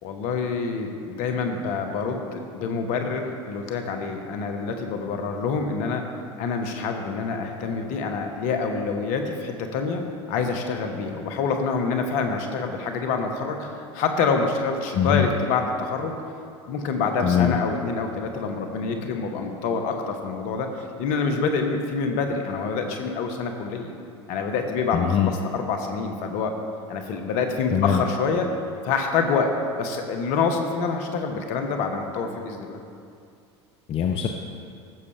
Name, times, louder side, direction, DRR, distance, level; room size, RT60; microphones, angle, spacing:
voice 1, 0.0-6.0 6.4-16.1 16.7-23.9 24.3-26.5 26.9-28.5 28.8-29.5 29.8-32.8, left 4 dB, 60° left, 4 dB, 1.3 m, -26 dB
voice 2, 17.2-17.6 24.9-25.3 27.7-28.0 33.9-34.3, left 9 dB, 40° left, 3 dB, 0.7 m, -21 dB
15.5 x 6.8 x 3.4 m, 2.4 s
hypercardioid pair, 85°, 15 cm